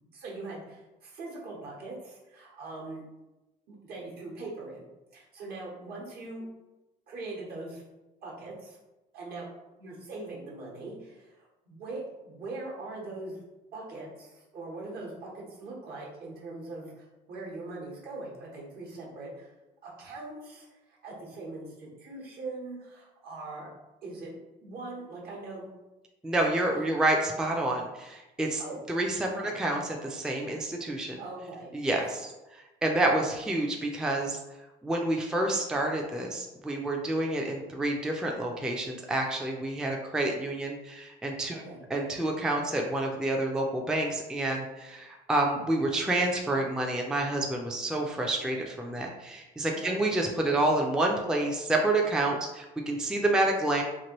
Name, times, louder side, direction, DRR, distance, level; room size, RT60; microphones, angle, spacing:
voice 1, 0.1-3.0 3.7-4.9 5.1-6.5 7.1-7.8 8.2-8.8 9.1-9.5 9.8-13.4 13.7-19.5 19.8-23.7 24.0-24.3 24.6-25.7 28.6-28.8 29.3-29.5 31.2-31.7 41.5-41.8 49.7-50.0, right 2 dB, 65° right, -3 dB, 1.1 m, -41 dB
voice 2, 26.2-28.6 28.9-31.2 31.7-34.4 34.8-41.6 41.9-53.8, right 1 dB, 5° right, 1 dB, 0.3 m, -28 dB
2.9 x 2.5 x 2.9 m, 1.0 s
cardioid pair, 110°, 17 cm